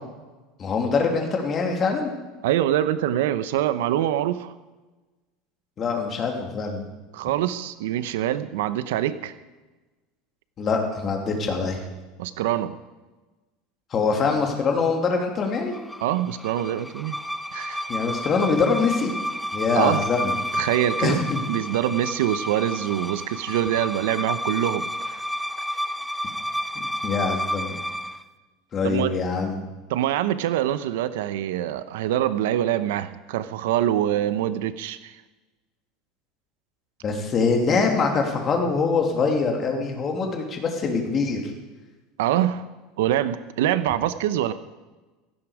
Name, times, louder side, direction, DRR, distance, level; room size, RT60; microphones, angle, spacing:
voice 1, 0.6-2.1 5.8-6.9 10.6-11.8 13.9-15.7 17.9-19.1 19.5-20.3 21.0-21.4 27.0-27.8 28.7-29.6 37.0-41.4, left 4 dB, 25° left, 2 dB, 2.6 m, -24 dB
voice 2, 2.4-4.5 7.1-9.3 12.2-12.7 16.0-17.2 17.5-17.8 19.7-20.0 20.6-21.2 21.5-25.2 28.8-29.2 29.9-35.2 42.2-42.6 43.0-44.5, right 12 dB, 85° right, 13 dB, 0.9 m, -24 dB
sound 1, 15.5-28.2, equal, ahead, 0.5 m, -31 dB
16.5 x 15.5 x 5.0 m, 1.2 s
supercardioid pair, 165°, 0 cm